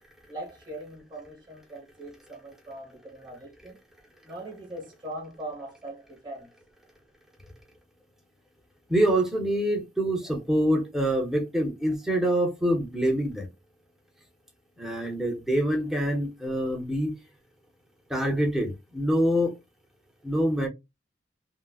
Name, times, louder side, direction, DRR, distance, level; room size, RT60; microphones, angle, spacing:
voice 1, 0.3-3.8 4.2-6.5, right 1 dB, 25° right, 1.3 m, -41 dB
voice 2, 8.9-13.5 14.8-17.1 18.1-19.5 20.2-20.7, right 1 dB, ahead, 0.8 m, -25 dB
3.8 x 2.1 x 2.3 m
head